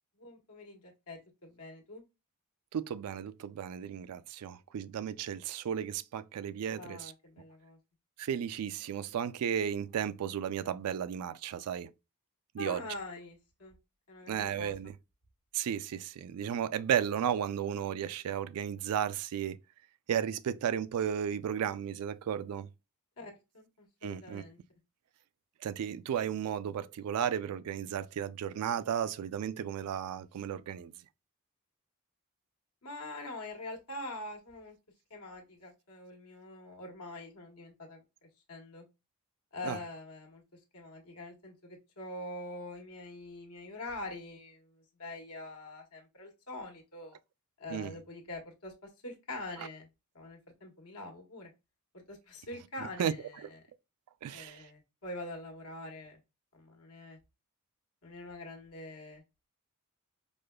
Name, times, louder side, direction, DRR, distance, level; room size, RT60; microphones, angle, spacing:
voice 1, 0.2-2.0 6.8-7.8 12.6-13.8 14.1-14.7 23.2-24.6 32.8-34.8 35.1-38.0 38.5-38.8 39.5-40.4 40.7-47.2 47.6-48.7 49.0-49.9 50.1-51.5 52.1-53.6 54.3-56.2 56.5-57.2 58.0-59.2, left 2 dB, 85° left, 1.2 m, -44 dB
voice 2, 2.7-7.1 8.2-11.9 12.5-12.8 14.3-14.9 15.5-19.6 20.1-22.7 24.0-24.4 25.6-30.9 39.6-39.8 47.7-47.9 53.0-53.1 53.4-53.5 54.2-54.7, right 9 dB, 85° right, 0.3 m, -34 dB
4.9 x 2.2 x 2.2 m
head